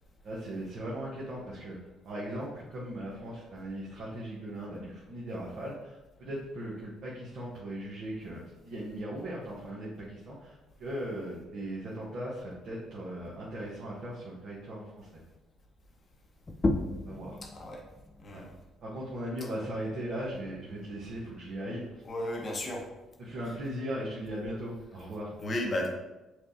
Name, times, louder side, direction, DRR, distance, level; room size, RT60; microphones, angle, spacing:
voice 1, 0.2-1.8 2.0-15.2 17.0-17.4 18.3-18.4 18.8-21.9 23.2-25.4, right 1 dB, 60° right, -5 dB, 0.9 m, -38 dB
sound 1, 16.5-21.7, left 2 dB, 25° left, 0.4 m, -36 dB
voice 2, 17.4-17.8 18.2-18.5 22.0-22.8 25.4-25.9, left 1 dB, 45° left, 0 dB, 1.0 m, -34 dB
5.9 x 2.3 x 2.6 m, 1.0 s
hypercardioid pair, 55°, 0 cm